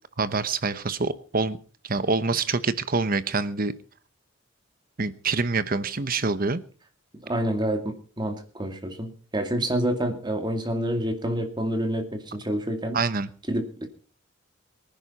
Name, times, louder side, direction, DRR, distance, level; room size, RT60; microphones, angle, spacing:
voice 1, 0.2-1.6 1.8-3.7 5.0-6.6 12.9-13.3, right 4 dB, 45° right, 13 dB, 1.0 m, -26 dB
voice 2, 7.1-13.0 13.5-13.9, right 1 dB, 25° right, 6 dB, 2.3 m, -28 dB
24.0 x 10.5 x 4.2 m, 0.40 s
head